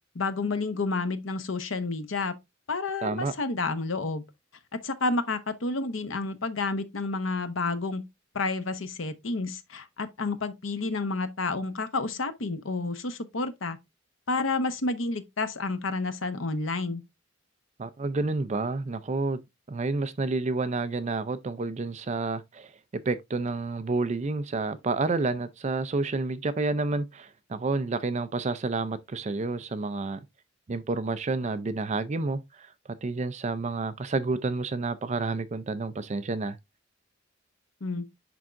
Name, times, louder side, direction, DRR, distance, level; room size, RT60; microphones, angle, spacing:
voice 1, 0.1-2.3 2.7-4.2 4.8-8.0 8.3-13.8 14.3-17.0 37.8-38.1, left 3 dB, 80° left, 0.9 m, -30 dB
voice 2, 3.0-3.3 17.8-19.4 19.7-22.7 23.1-30.2 30.7-32.7 33.0-36.6, right 3 dB, 35° right, 0.4 m, -29 dB
10.5 x 3.6 x 2.5 m
head